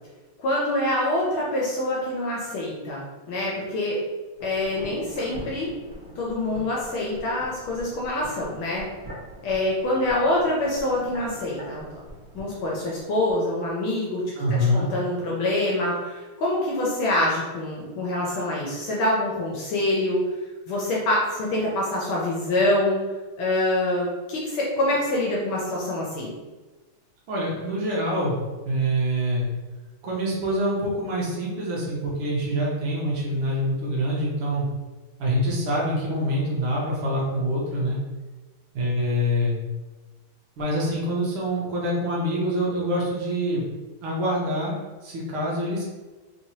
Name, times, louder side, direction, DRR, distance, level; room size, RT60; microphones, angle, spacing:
voice 1, 0.4-4.0 4.4-5.7 6.2-8.9 9.4-12.0 12.3-20.3 20.7-23.0 23.4-26.3, left 1 dB, 75° left, -4 dB, 1.4 m, -25 dB
sound 1, 4.3-13.4 13.7-13.8, equal, 35° right, 1.5 m, -43 dB
voice 2, 14.3-14.9 27.3-29.5 30.0-34.7 35.2-38.0 38.7-39.6 40.6-43.7 44.0-44.7 45.0-45.8, equal, 75° right, -5 dB, 1.8 m, -25 dB
4.0 x 3.1 x 2.8 m, 1.2 s
omnidirectional pair, 2.4 m